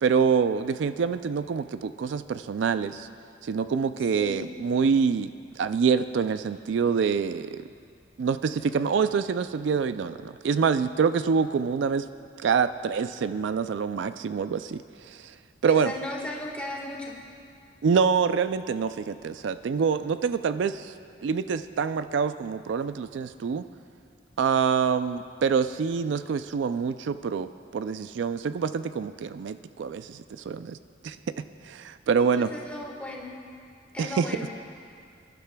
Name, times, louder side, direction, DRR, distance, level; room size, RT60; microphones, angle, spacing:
voice 1, 0.0-3.1 3.4-5.3 5.6-7.6 8.2-12.1 12.4-15.3 15.6-15.9 17.8-20.9 21.2-23.7 24.4-30.8 31.0-32.5 34.0-34.3, right 6 dB, 70° right, 12 dB, 0.3 m, -26 dB
voice 2, 4.1-4.5 15.7-17.2 32.2-33.4 33.9-34.5, left 1 dB, 5° left, -2 dB, 1.5 m, -36 dB
26.0 x 11.5 x 2.2 m, 2.3 s
head